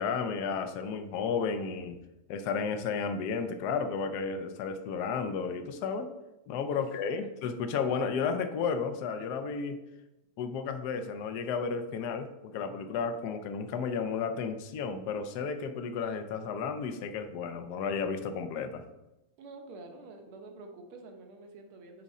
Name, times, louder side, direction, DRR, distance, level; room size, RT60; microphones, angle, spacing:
voice 1, 0.0-2.0 2.3-6.1 6.5-9.8 10.4-18.8, left 5 dB, 75° left, 8 dB, 0.9 m, -33 dB
voice 2, 19.4-22.0, right 3 dB, 80° right, 4 dB, 1.9 m, -48 dB
9.3 x 3.6 x 4.2 m, 0.95 s
omnidirectional pair, 2.4 m